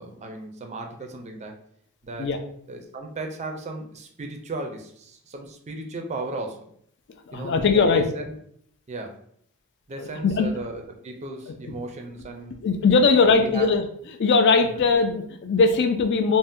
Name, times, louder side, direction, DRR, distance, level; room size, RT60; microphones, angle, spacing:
voice 1, 0.0-1.6 2.0-2.3 2.7-6.7 7.3-8.3 8.9-9.2 9.9-12.6 13.4-13.7 14.7-14.8, right 2 dB, 30° right, 3 dB, 0.4 m, -35 dB
voice 2, 7.3-8.0 10.0-10.5 11.5-11.7 12.6-13.8 14.2-16.4, left 4 dB, 50° left, 5 dB, 0.4 m, -20 dB
2.7 x 2.1 x 3.5 m, 0.66 s
head